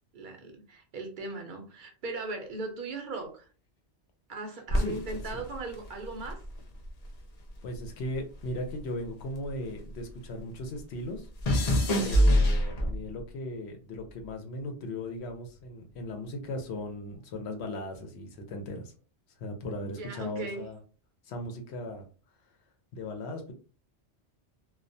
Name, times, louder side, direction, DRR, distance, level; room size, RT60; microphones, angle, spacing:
voice 1, 0.1-3.5 4.3-6.4 12.0-12.3 19.7-20.7, right 2 dB, 55° right, 4 dB, 0.6 m, -38 dB
sound 1, 4.7-7.2 7.5-10.1 10.4-13.2 13.9-14.3, equal, 50° left, 0.5 m, -27 dB
voice 2, 7.6-11.3 12.0-18.9 19.4-20.8 21.2-22.1 22.9-23.5, left 1 dB, 70° left, 3 dB, 0.8 m, -37 dB
2.3 x 2.1 x 2.5 m, 0.37 s
omnidirectional pair, 1.2 m